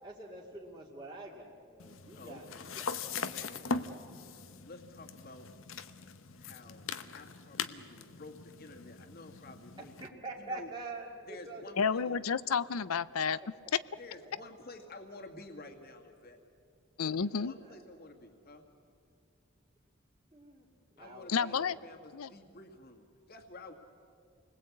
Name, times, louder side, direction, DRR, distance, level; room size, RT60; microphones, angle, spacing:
voice 1, 0.0-4.2 9.8-12.2 13.1-13.5 14.2-14.5 17.6-17.8 20.3-21.9, right 2 dB, 20° right, -3 dB, 2.3 m, -47 dB
sound 1, 1.8-10.1, left 4 dB, 65° left, 1.0 m, -41 dB
voice 2, 2.1-2.7 3.3-3.7 4.6-5.5 6.4-6.8 7.1-9.9 10.4-10.7 11.3-12.1 14.0-16.4 17.0-18.6 21.0-23.7, left 2 dB, 45° left, 4 dB, 2.1 m, -51 dB
voice 3, 11.8-13.4 17.0-17.5 21.3-21.8 22.1-22.3, left 6 dB, 85° left, 17 dB, 0.6 m, -30 dB
28.5 x 20.5 x 8.6 m, 2.3 s
head